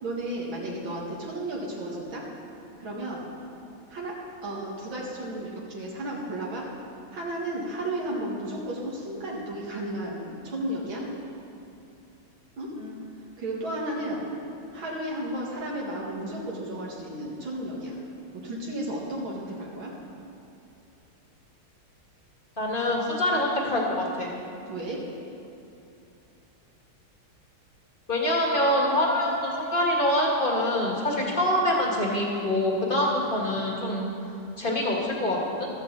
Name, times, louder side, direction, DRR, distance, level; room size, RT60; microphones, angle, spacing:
voice 1, 0.0-2.2 2.8-3.2 3.9-4.2 4.4-6.7 7.1-11.0 12.6-12.7 13.4-14.2 14.7-18.0 18.3-19.9 24.7-25.0, right 1 dB, 70° right, -5 dB, 2.7 m, -33 dB
voice 2, 22.6-24.3 28.1-34.0 34.6-35.7, left 1 dB, 25° left, -2 dB, 1.9 m, -25 dB
15.0 x 13.5 x 4.0 m, 2.8 s
omnidirectional pair, 2.3 m